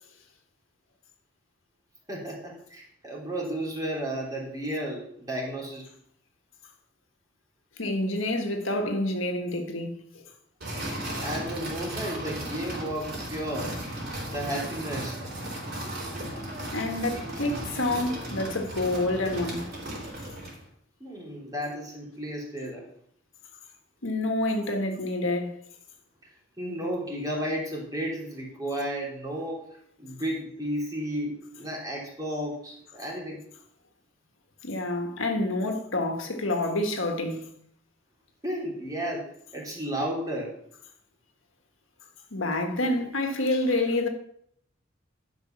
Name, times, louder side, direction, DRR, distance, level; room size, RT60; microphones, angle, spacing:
voice 1, 2.1-5.9 11.2-13.7 14.3-15.2 21.0-22.8 26.6-29.6 30.0-33.4 38.4-39.3 39.5-40.5, equal, 20° right, 3.2 m, -33 dB
voice 2, 7.8-10.0 15.8-15.9 16.7-19.6 24.0-25.5 34.6-37.5 42.3-44.1, left 2 dB, 80° left, 1.6 m, -28 dB
sound 1, 10.6-20.6, right 1 dB, 50° right, 4.3 m, -36 dB
11.5 x 5.7 x 5.8 m
head